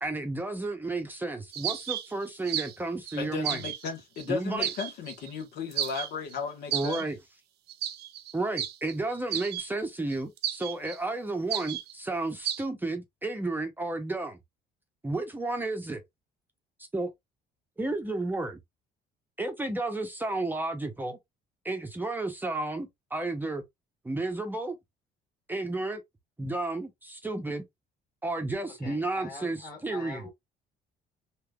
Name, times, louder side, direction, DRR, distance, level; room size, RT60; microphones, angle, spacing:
voice 1, 0.0-3.6 4.3-4.7 6.7-7.2 8.3-14.4 15.0-16.0 16.9-17.1 17.8-18.6 19.4-21.2 21.6-23.6 24.0-24.7 25.5-26.0 26.4-27.6 28.2-30.2, right 2 dB, 10° right, 0.6 m, -32 dB
sound 1, 1.5-2.8 3.1-3.9 4.2-4.3 4.6-5.3 5.7-6.3 6.7-7.0 7.7-9.7 10.1-11.0 11.5-11.9 12.4-12.6, right 11 dB, 75° right, 0.6 m, -33 dB
voice 2, 3.2-7.0, left 5 dB, 80° left, 1.3 m, -35 dB
voice 3, 28.7-30.3, left 4 dB, 60° left, 1.7 m, -44 dB
3.3 x 2.9 x 2.3 m
cardioid pair, 110°, 17 cm